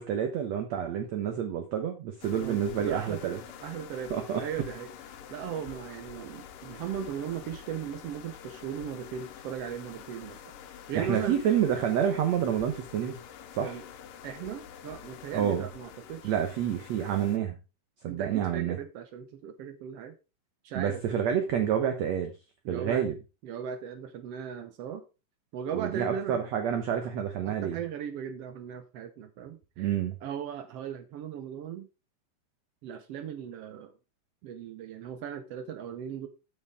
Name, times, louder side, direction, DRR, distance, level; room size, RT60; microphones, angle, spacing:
voice 1, 0.0-3.4 4.1-4.4 11.0-13.2 13.5-13.8 15.3-15.7 16.2-17.6 18.0-18.8 20.7-22.3 22.7-23.2 25.7-27.8 29.8-30.2, right 9 dB, 65° right, 2.0 m, -28 dB
sound 1, 2.2-17.4, left 8 dB, 75° left, 2.6 m, -47 dB
voice 2, 2.4-4.1 4.4-4.9 5.3-10.4 10.7-11.4 13.6-13.8 14.2-16.3 18.1-20.1 20.6-21.0 22.6-23.1 23.4-25.0 25.5-26.4 27.4-29.9 30.2-31.9 32.8-33.9 34.4-36.3, right 8 dB, 85° right, 1.3 m, -37 dB
13.0 x 6.3 x 3.6 m
omnidirectional pair, 4.0 m